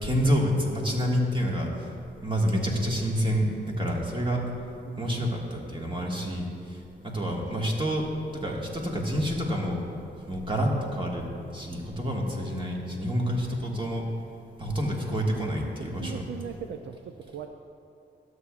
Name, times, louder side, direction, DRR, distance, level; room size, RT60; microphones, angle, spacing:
voice 1, 0.0-1.9 2.2-4.4 5.0-8.1 8.3-9.8 10.3-11.3 11.5-14.0 14.6-16.3, equal, 25° right, -1 dB, 1.8 m, -28 dB
voice 2, 4.8-5.3 7.5-7.7 15.4-15.5 16.0-17.5, right 8 dB, 75° right, 5 dB, 0.4 m, -40 dB
12.5 x 8.1 x 2.4 m, 2.9 s
cardioid pair, 60°, 19 cm